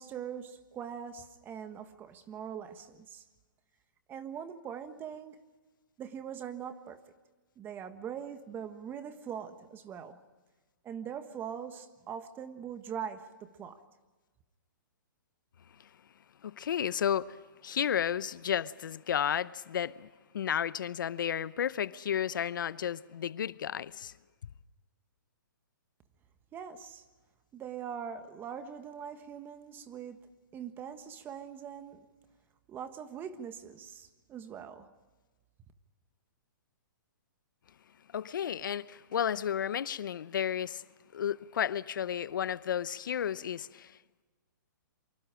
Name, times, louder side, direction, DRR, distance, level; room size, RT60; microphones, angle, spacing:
voice 1, 0.0-3.2 4.1-5.4 6.0-7.0 7.6-10.2 10.8-13.8 26.5-27.0 27.5-30.2 30.5-32.1 32.7-34.9, right 8 dB, 20° right, 1.5 m, -42 dB
voice 2, 16.4-17.4 17.6-20.1 20.3-24.1 38.1-40.8 41.1-44.0, left 9 dB, 70° left, 0.7 m, -32 dB
27.5 x 24.5 x 5.0 m
hypercardioid pair, 145°, 11 cm